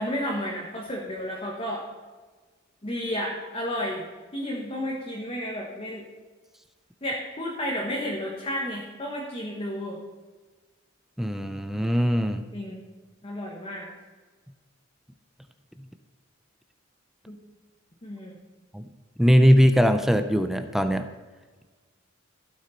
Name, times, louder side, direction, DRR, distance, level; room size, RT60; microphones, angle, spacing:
voice 1, 0.0-1.9 2.8-4.1 4.3-6.0 7.0-10.0 12.5-12.8 13.2-13.9 17.3-17.4 18.0-18.3, equal, 30° left, -2 dB, 1.4 m, -32 dB
voice 2, 11.2-12.4 18.7-18.8 19.2-21.0, equal, ahead, 8 dB, 0.4 m, -20 dB
15.5 x 6.3 x 4.3 m, 1.4 s
head